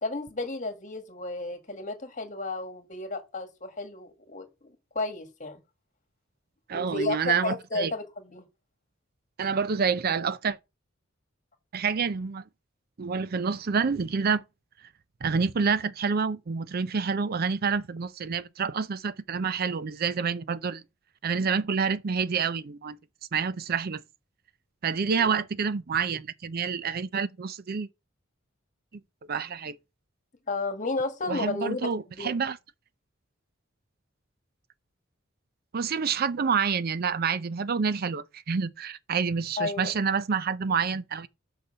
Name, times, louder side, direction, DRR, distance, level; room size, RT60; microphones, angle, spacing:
voice 1, 0.0-5.6 6.7-8.4 25.2-25.3 30.5-31.9 32.2-32.4 39.6-39.9, left 2 dB, 40° left, 1.8 m, -32 dB
voice 2, 6.7-7.9 9.4-10.6 11.7-12.4 13.0-14.4 15.2-20.8 21.2-23.0 23.3-24.0 24.8-27.9 29.3-29.8 31.3-32.6 35.7-41.3, right 5 dB, 50° right, 0.5 m, -28 dB
6.6 x 5.9 x 5.5 m
head